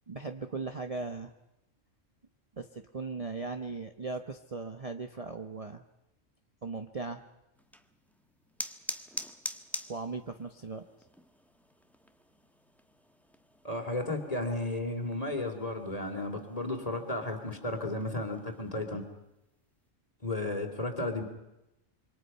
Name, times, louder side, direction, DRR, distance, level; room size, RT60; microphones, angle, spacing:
voice 1, 0.1-1.3 2.6-5.8 6.6-7.2 9.9-10.9, right 4 dB, 30° right, 6 dB, 1.0 m, -38 dB
sound 1, 7.6-18.7, equal, ahead, 1.1 m, -46 dB
voice 2, 13.6-19.0 20.2-21.2, left 2 dB, 30° left, 5 dB, 3.1 m, -33 dB
27.0 x 24.5 x 5.7 m, 0.93 s
omnidirectional pair, 1.3 m